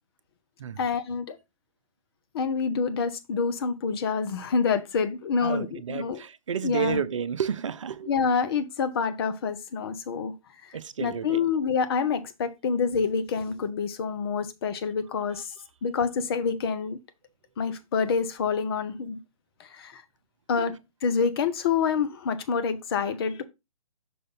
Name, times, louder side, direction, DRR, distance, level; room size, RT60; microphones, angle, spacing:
voice 1, 0.8-1.4 2.3-6.2 6.6-7.0 8.1-10.3 11.0-15.5 15.8-17.0 17.6-19.2 19.6-20.0 20.5-23.4, left 5 dB, 45° left, 0.9 m, -27 dB
voice 2, 5.4-8.1 10.7-11.4 15.3-15.4 20.5-20.7, right 8 dB, 60° right, 0.6 m, -31 dB
6.0 x 4.9 x 3.9 m
figure-of-eight pair, 135°, 18 cm